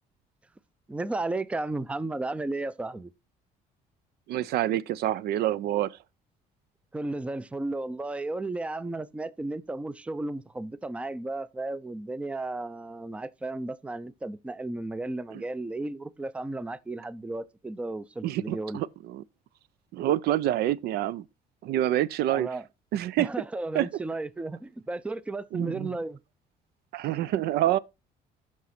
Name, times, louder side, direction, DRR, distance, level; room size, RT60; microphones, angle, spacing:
voice 1, 0.9-3.1 6.9-18.8 22.3-22.7 23.2-26.2, right 2 dB, 5° right, 0.4 m, -34 dB
voice 2, 4.3-6.0 15.3-15.4 18.2-19.2 19.9-21.2 21.6-22.5 22.9-23.3 23.7-23.9 25.5-25.9 26.9-27.8, right 13 dB, 70° right, 0.4 m, -27 dB
9.1 x 5.9 x 4.2 m
cardioid pair, 110°, 17 cm